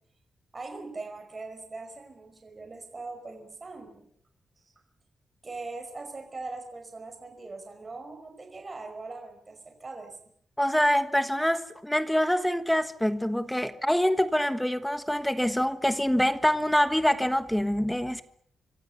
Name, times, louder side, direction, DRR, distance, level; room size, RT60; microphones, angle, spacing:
voice 1, 0.5-4.1 5.4-10.1, right 3 dB, 30° right, 5.3 m, -41 dB
voice 2, 10.6-18.2, equal, 5° left, 1.3 m, -25 dB
26.5 x 25.0 x 6.9 m
wide cardioid pair, 140°, 0 cm